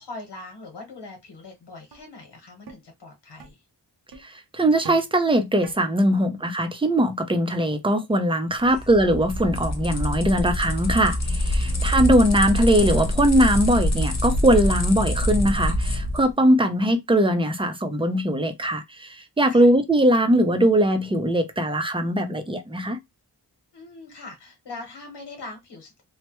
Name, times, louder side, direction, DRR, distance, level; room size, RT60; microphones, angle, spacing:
voice 1, 0.0-3.6 6.1-6.3 8.7-8.9 11.6-12.0 19.5-19.7 23.7-26.0, left 3 dB, 80° left, 1.2 m, -42 dB
Steel Tube Strikes, 1.3-1.4 1.9-2.0 2.7-2.8 3.4-3.5 4.1-4.3 4.8-5.1 5.6-5.8, right 6 dB, 65° right, 0.7 m, -40 dB
voice 2, 4.2-23.0, right 1 dB, 15° right, 0.6 m, -21 dB
sound 1, 8.6-16.3, left 1 dB, 40° left, 0.8 m, -25 dB
3.2 x 2.1 x 3.0 m
wide cardioid pair, 75°, 41 cm